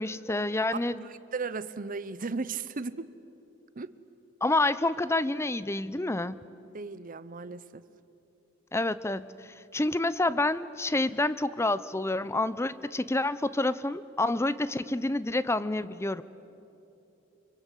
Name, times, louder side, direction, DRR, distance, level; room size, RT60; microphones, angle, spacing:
voice 1, 0.0-1.0 4.4-6.4 8.7-9.3 9.7-16.2, left 2 dB, 15° left, 16 dB, 0.6 m, -28 dB
voice 2, 1.0-3.1 3.7-3.9 6.7-7.8, right 4 dB, 45° right, 15 dB, 0.8 m, -36 dB
25.5 x 24.5 x 8.3 m, 2.8 s
head